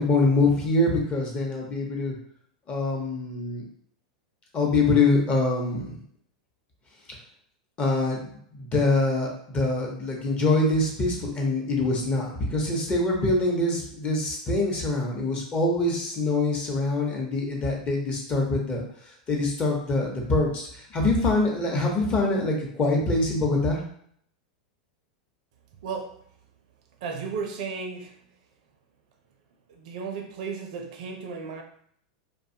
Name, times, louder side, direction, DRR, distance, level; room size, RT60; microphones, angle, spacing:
voice 1, 0.0-2.1 2.7-3.7 4.5-6.0 7.8-23.8, left 2 dB, 30° left, -1 dB, 0.8 m, -24 dB
voice 2, 25.8-26.2 27.0-28.3 29.7-31.6, right 5 dB, 65° right, 4 dB, 0.5 m, -34 dB
2.5 x 2.2 x 2.7 m, 0.65 s
hypercardioid pair, 105°, 4 cm